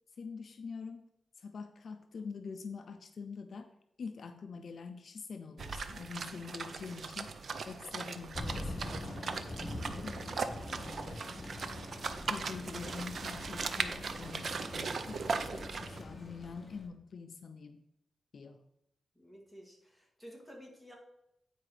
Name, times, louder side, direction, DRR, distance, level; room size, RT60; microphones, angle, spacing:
voice 1, 0.2-1.1 1.4-7.3 7.6-10.2 10.7-11.5 12.3-17.8 18.3-18.6, left 5 dB, 55° left, 8 dB, 0.5 m, -45 dB
sound 1, 5.6-16.0, right 4 dB, 55° right, 0.6 m, -39 dB
Thunder, 8.3-16.9, left 1 dB, 25° left, 1.4 m, -44 dB
voice 2, 19.2-21.0, equal, 5° right, -1 dB, 2.1 m, -52 dB
9.2 x 4.8 x 4.8 m, 0.81 s
wide cardioid pair, 145°, 0 cm